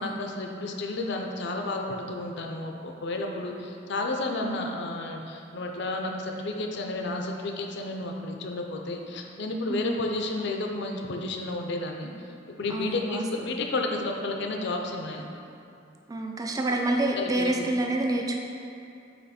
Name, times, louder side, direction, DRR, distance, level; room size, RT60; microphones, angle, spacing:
voice 1, 0.0-12.1 12.5-15.3 17.2-17.7, left 2 dB, 65° left, 2 dB, 0.6 m, -32 dB
voice 2, 12.7-13.2 16.1-18.4, right 2 dB, 20° right, 1 dB, 0.4 m, -28 dB
8.7 x 3.0 x 4.2 m, 2.6 s
head